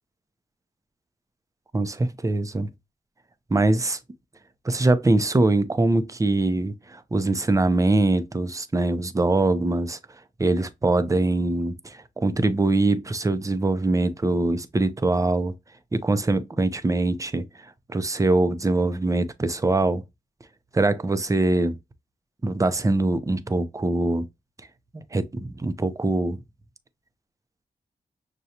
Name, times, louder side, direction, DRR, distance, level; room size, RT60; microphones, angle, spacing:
voice 1, 1.7-2.7 3.5-4.0 4.6-10.0 10.4-15.5 15.9-20.0 20.7-21.7 22.4-24.2 24.9-26.4, right 2 dB, 20° right, 0.6 m, -23 dB
6.5 x 2.3 x 2.8 m
cardioid pair, 60°, 15 cm